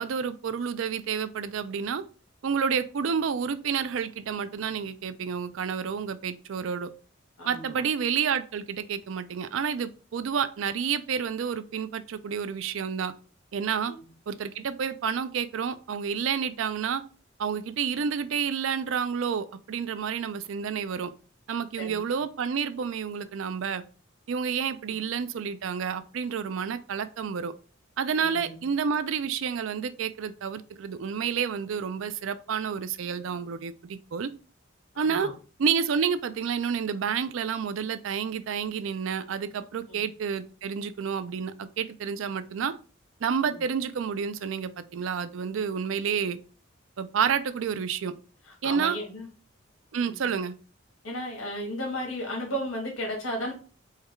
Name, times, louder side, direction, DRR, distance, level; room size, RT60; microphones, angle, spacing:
voice 1, 0.0-2.0 2.4-6.9 7.4-13.1 13.5-13.9 14.3-17.0 17.4-21.1 21.5-23.8 24.3-27.5 28.0-34.3 35.0-35.3 35.6-42.7 43.2-46.4 47.0-48.1 48.6-49.0 49.9-50.5, right 6 dB, 70° right, 12 dB, 0.4 m, -29 dB
voice 2, 7.4-7.7 13.8-13.9 21.8-22.0 28.2-28.6 34.9-35.3 39.9-40.0 43.5-43.6 48.6-49.3 50.0-50.1 51.0-53.5, equal, 85° left, 0 dB, 1.4 m, -34 dB
4.7 x 2.3 x 3.2 m, 0.37 s
head